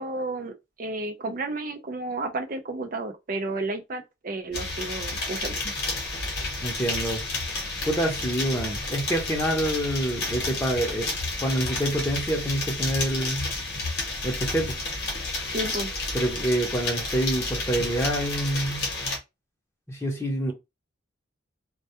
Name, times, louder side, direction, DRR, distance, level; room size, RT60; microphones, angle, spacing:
voice 1, 0.0-5.8 15.5-15.9, right 2 dB, 40° right, 0.4 m, -32 dB
sound 1, 4.5-19.2, left 2 dB, 50° left, 0.9 m, -31 dB
voice 2, 6.6-7.2 7.8-11.1 11.4-13.5 14.2-14.7 16.1-18.9 19.9-20.5, right 1 dB, 15° left, 0.7 m, -27 dB
2.2 x 2.2 x 2.8 m
head